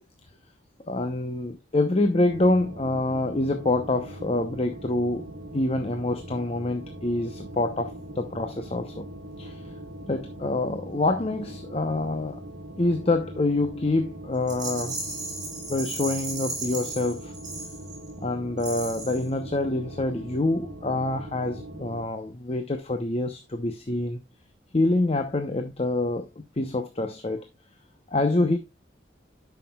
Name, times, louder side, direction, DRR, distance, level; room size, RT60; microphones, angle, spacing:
voice 1, 0.9-5.2 5.5-9.1 9.4-9.7 10.1-12.4 12.8-15.0 15.7-17.3 18.2-24.2 24.7-27.5 28.1-28.6, left 2 dB, 30° left, 0.7 m, -26 dB
sound 1, 2.2-22.1, right 1 dB, 60° right, 1.5 m, -41 dB
Rattle, 14.5-18.1 18.6-19.3, right 3 dB, 20° right, 3.6 m, -35 dB
11.0 x 5.9 x 2.3 m
head